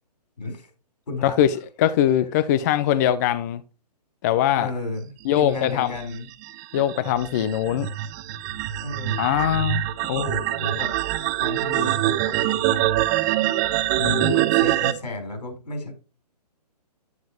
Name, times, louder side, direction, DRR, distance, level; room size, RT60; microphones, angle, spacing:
voice 1, 0.4-0.7 1.1-1.4 4.6-6.3 8.8-9.2 10.1-11.0 11.4-12.9 14.1-15.9, left 2 dB, 75° left, 4.3 m, -33 dB
voice 2, 1.2-3.6 4.2-4.7 5.3-6.0 6.7-7.9 9.2-10.3 14.0-14.3, left 11 dB, 25° left, 0.4 m, -22 dB
sound 1, 5.6-14.9, right 15 dB, 25° right, 0.7 m, -24 dB
9.5 x 8.9 x 3.0 m
figure-of-eight pair, 135°, 21 cm